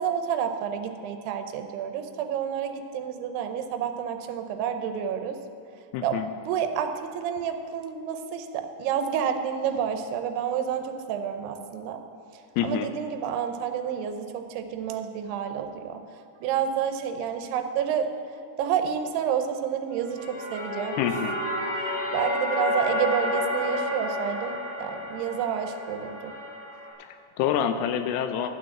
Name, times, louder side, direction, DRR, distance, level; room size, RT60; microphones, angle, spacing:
voice 1, 0.0-5.4 6.0-6.2 6.5-12.0 12.3-16.0 16.4-21.0 21.8-26.3, right 8 dB, 90° right, 7 dB, 2.8 m, -29 dB
voice 2, 5.9-6.3 12.6-12.9 21.0-21.4 21.8-22.0 27.0-28.5, left 9 dB, 85° left, 8 dB, 2.5 m, -27 dB
sound 1, 20.0-26.9, left 1 dB, 55° left, 4.1 m, -30 dB
12.0 x 6.2 x 8.5 m, 2.4 s
omnidirectional pair, 4.6 m